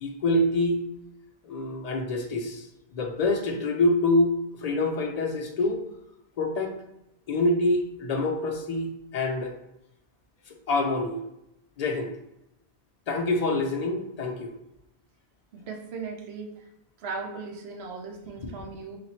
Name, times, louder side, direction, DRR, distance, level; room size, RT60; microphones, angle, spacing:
voice 1, 0.0-0.8 1.4-2.7 2.9-5.8 6.4-6.7 7.3-9.6 10.5-11.2 11.8-12.1 13.1-14.5, left 2 dB, 50° left, 3 dB, 0.5 m, -26 dB
voice 2, 15.5-16.6 17.0-19.0, right 4 dB, 80° right, 2 dB, 0.9 m, -37 dB
2.9 x 2.4 x 4.1 m, 0.85 s
omnidirectional pair, 1.0 m